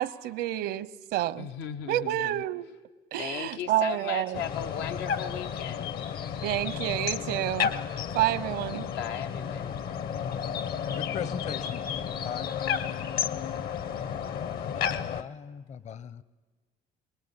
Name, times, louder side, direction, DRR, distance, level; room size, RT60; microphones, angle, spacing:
voice 1, 0.0-1.5 1.9-2.7 3.1-4.4 6.4-7.8 8.1-8.9, right 14 dB, 80° right, 0.9 m, -29 dB
voice 2, 1.4-2.4 3.2-5.9 8.6-9.7 13.5-14.0, left 8 dB, 90° left, 1.0 m, -37 dB
sound 1, 4.3-15.2, left 8 dB, 65° left, 1.2 m, -32 dB
voice 3, 10.9-11.8 12.2-12.5 14.5-16.2, left 7 dB, 45° left, 0.8 m, -38 dB
22.5 x 21.0 x 10.0 m
cardioid pair, 110°, 17 cm